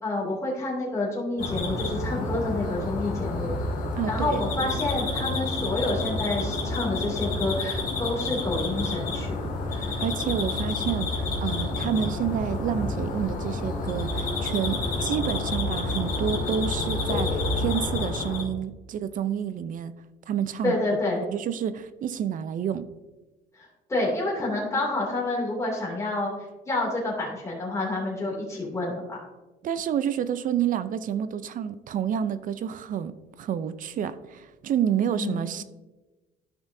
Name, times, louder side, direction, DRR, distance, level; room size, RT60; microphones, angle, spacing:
voice 1, 0.0-3.5 4.1-9.4 9.7-10.0 20.6-21.2 23.6-26.3 26.7-29.2 35.1-35.4, left 2 dB, 15° left, -4 dB, 2.7 m, -28 dB
sound 1, 1.4-18.4, left 2 dB, 55° left, 2.2 m, -29 dB
voice 2, 4.0-4.4 10.0-19.9 20.3-20.8 21.2-22.8 29.6-33.1 33.4-35.6, right 9 dB, 55° right, 14 dB, 0.6 m, -29 dB
13.0 x 6.0 x 2.7 m, 1.2 s
cardioid pair, 110°, 17 cm